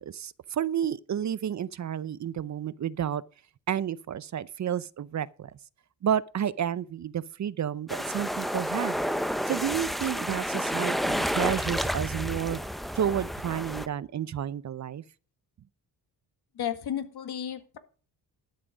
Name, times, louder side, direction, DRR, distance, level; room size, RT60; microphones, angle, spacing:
voice 1, 0.0-3.2 3.7-5.5 6.0-9.0 9.5-12.6 12.9-15.0, right 9 dB, 45° right, 0.6 m, -31 dB
sound 1, 7.9-13.9, equal, ahead, 0.7 m, -30 dB
voice 2, 16.6-17.8, left 10 dB, 70° left, 1.9 m, -33 dB
12.5 x 7.6 x 5.0 m
cardioid pair, 105°, 40 cm